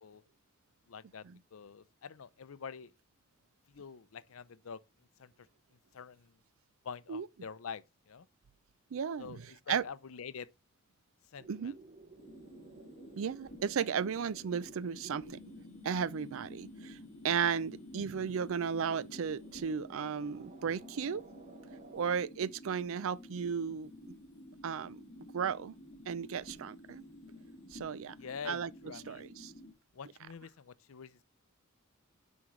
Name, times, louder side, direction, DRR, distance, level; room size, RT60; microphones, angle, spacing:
voice 1, 0.9-1.2 1.5-2.9 3.7-4.8 5.2-5.3 5.9-6.3 6.8-8.3 9.2-10.5 11.3-11.7 28.2-29.2 29.9-31.2, left 6 dB, 70° left, 0.5 m, -46 dB
voice 2, 8.9-9.8 11.5-11.7 13.2-15.4 15.8-17.0 17.2-21.3 21.9-24.2 24.6-25.7 26.1-27.0 27.7-28.2 28.4-28.7 29.1-29.5, right 7 dB, 70° right, 0.4 m, -35 dB
sound 1, 11.4-22.2, right 3 dB, 40° right, 0.8 m, -57 dB
sound 2, 12.2-29.7, left 1 dB, 35° left, 1.6 m, -52 dB
9.5 x 5.2 x 3.1 m
head